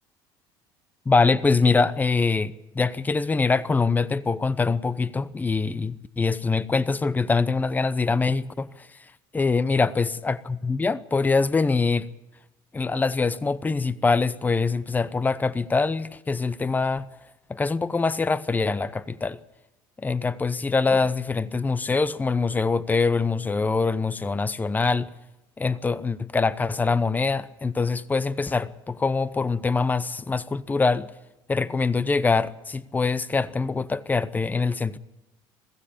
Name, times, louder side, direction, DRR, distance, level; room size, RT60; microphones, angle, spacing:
voice 1, 1.1-8.9 9.3-12.1 12.7-17.1 17.5-19.4 20.0-25.1 25.6-31.1 31.5-35.0, left 4 dB, 15° left, 0.8 m, -24 dB
21.5 x 15.5 x 8.8 m
supercardioid pair, 95°, 10 cm